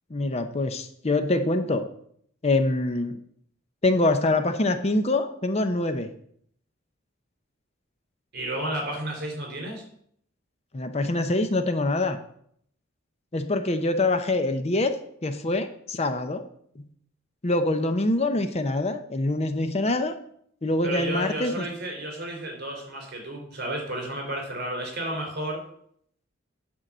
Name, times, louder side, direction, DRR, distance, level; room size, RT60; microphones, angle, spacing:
voice 1, 0.1-1.9 2.4-3.2 3.8-6.1 10.7-12.2 13.3-14.9 15.2-16.4 16.8-16.9 17.4-20.1 20.6-21.7, left 2 dB, 30° left, 8 dB, 0.6 m, -25 dB
voice 2, 8.3-9.8 20.8-25.6, right 1 dB, 50° right, 1 dB, 3.6 m, -32 dB
9.2 x 4.6 x 7.3 m, 0.66 s
head